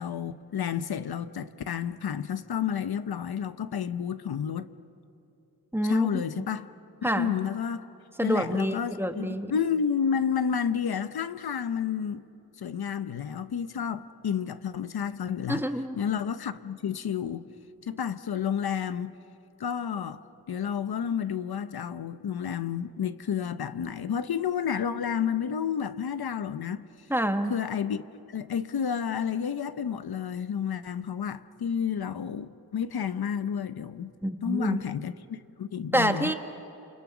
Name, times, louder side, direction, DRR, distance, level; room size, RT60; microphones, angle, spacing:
voice 1, 0.0-4.7 5.8-6.7 7.0-7.9 8.2-12.2 12.6-15.7 16.0-17.5 17.8-19.1 19.6-20.2 20.5-26.9 27.5-28.0 28.3-34.1 34.4-36.3, left 8 dB, 75° left, 0.9 m, -30 dB
voice 2, 5.7-6.2 7.0-7.4 8.2-9.5 15.5-16.0 27.1-27.5 34.2-34.8 35.9-36.3, right 1 dB, 5° right, 1.5 m, -27 dB
29.5 x 28.5 x 6.2 m
wide cardioid pair, 105°, 38 cm